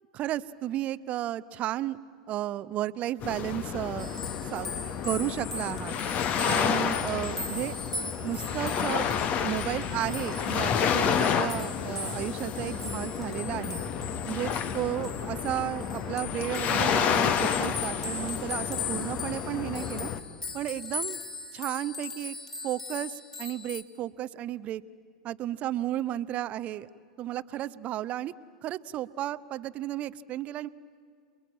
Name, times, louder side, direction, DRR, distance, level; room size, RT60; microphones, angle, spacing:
voice 1, 0.1-2.0 2.3-4.1 4.5-4.7 5.0-6.0 6.4-7.7 8.2-9.1 9.4-13.8 14.2-20.1 20.5-21.2 21.5-22.4 22.6-24.8 25.2-26.9 27.2-28.3 28.6-30.7, right 13 dB, 35° right, 17 dB, 0.8 m, -33 dB
sound 1, 3.2-20.2, left 7 dB, 35° left, 1.5 m, -30 dB
sound 2, 4.0-23.8, left 3 dB, 10° left, 2.1 m, -39 dB
28.5 x 22.0 x 8.7 m, 2.3 s
figure-of-eight pair, 85°, 4 cm